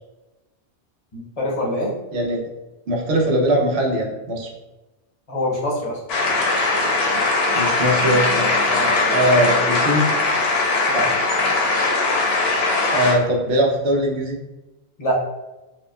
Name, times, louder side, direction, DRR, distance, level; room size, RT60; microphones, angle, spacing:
voice 1, 1.1-1.9 5.3-6.0 8.7-8.9 10.9-11.0 15.0-15.2, equal, 40° left, -3 dB, 0.7 m, -24 dB
voice 2, 2.1-2.4 2.9-4.5 7.5-8.5 9.1-10.1 12.9-14.4, right 1 dB, 70° right, -1 dB, 1.0 m, -20 dB
sound 1, 6.1-13.1, left 3 dB, 70° left, 0.9 m, -20 dB
4.6 x 2.3 x 2.3 m, 1.0 s
omnidirectional pair, 1.1 m